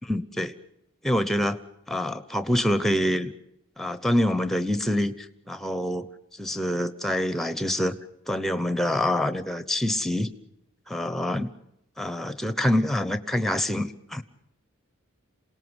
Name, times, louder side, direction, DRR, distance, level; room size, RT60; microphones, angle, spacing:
voice 1, 0.1-0.5 1.0-1.6 1.9-3.3 3.8-6.1 6.4-8.0 8.3-10.3 10.9-11.5 12.0-14.2, left 1 dB, ahead, 13 dB, 1.0 m, -26 dB
27.5 x 18.5 x 8.1 m, 0.82 s
head